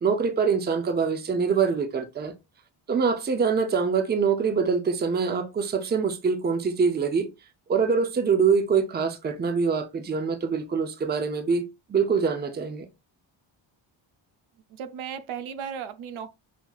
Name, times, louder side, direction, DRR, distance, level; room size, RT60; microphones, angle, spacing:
voice 1, 0.0-2.3 2.9-7.3 7.7-11.6 11.9-12.9, right 5 dB, 20° right, 0.5 m, -24 dB
voice 2, 14.7-16.3, right 8 dB, 75° right, 0.6 m, -35 dB
5.9 x 2.7 x 2.3 m
wide cardioid pair, 155°, 49 cm